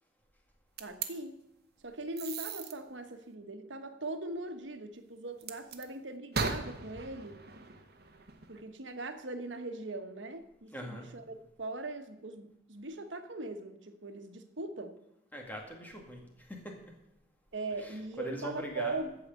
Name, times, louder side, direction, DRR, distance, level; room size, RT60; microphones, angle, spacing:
sound 1, 0.8-1.1 2.2-2.7 5.4-5.9 6.3-8.6, right 4 dB, 55° right, 1.1 m, -38 dB
voice 1, 0.8-1.3 1.8-7.4 8.5-15.0 17.5-19.2, right 2 dB, 85° right, 8 dB, 1.2 m, -40 dB
voice 2, 10.7-11.1 15.3-16.7 17.8-19.0, equal, 10° left, 1 dB, 2.1 m, -41 dB
14.5 x 4.9 x 8.2 m, 0.89 s
head